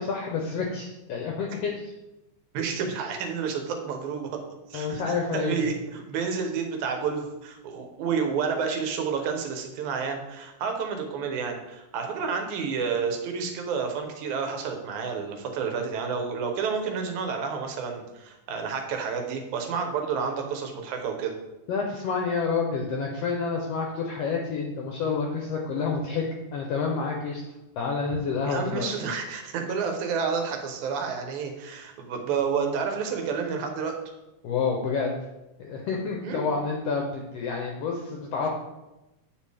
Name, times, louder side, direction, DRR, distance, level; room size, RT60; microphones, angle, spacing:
voice 1, 0.0-1.9 4.7-5.6 6.1-6.3 21.7-27.4 27.8-28.9 34.4-35.1 35.6-38.5, left 5 dB, 75° left, 1 dB, 1.5 m, -29 dB
voice 2, 2.5-4.3 4.7-5.0 5.3-21.3 28.1-28.2 28.5-34.0 36.2-36.5, right 6 dB, 75° right, 4 dB, 2.2 m, -30 dB
8.7 x 5.3 x 3.3 m, 0.99 s
omnidirectional pair, 3.6 m